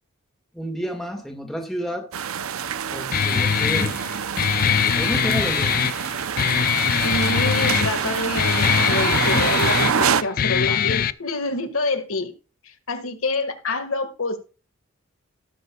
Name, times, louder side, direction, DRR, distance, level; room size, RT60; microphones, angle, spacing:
voice 1, 0.5-2.1 2.9-3.9 4.9-5.8, equal, ahead, 2 dB, 1.8 m, -30 dB
sound 1, 2.1-10.2, right 7 dB, 80° right, 0.6 m, -26 dB
Guitar, 3.1-11.1, left 8 dB, 40° left, 0.4 m, -22 dB
voice 2, 6.9-12.3 12.9-14.4, left 2 dB, 75° left, 6 dB, 1.7 m, -26 dB
18.0 x 6.8 x 2.3 m, 0.34 s
head